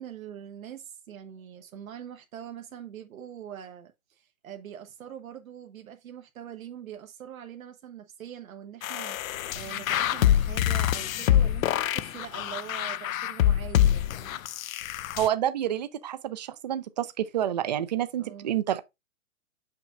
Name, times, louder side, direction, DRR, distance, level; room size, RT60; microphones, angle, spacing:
voice 1, 0.0-14.4 18.2-18.5, right 9 dB, 80° right, 1.1 m, -43 dB
sound 1, 8.8-15.3, left 11 dB, 80° left, 0.6 m, -25 dB
voice 2, 15.2-18.8, right 11 dB, 35° right, 0.4 m, -28 dB
6.3 x 5.9 x 2.6 m
hypercardioid pair, 160°, 41 cm